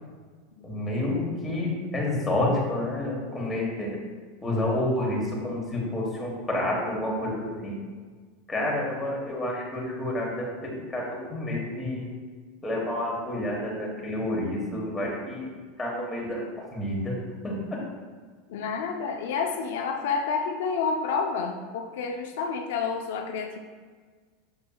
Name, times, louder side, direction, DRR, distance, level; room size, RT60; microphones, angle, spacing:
voice 1, 0.6-4.0 4.4-7.8 8.5-12.1 12.6-15.5 15.8-17.2 17.4-17.8, left 1 dB, 10° left, -3 dB, 1.3 m, -29 dB
voice 2, 18.5-23.6, left 5 dB, 75° left, 3 dB, 0.7 m, -29 dB
7.2 x 6.2 x 2.3 m, 1.5 s
supercardioid pair, 170°, 0 cm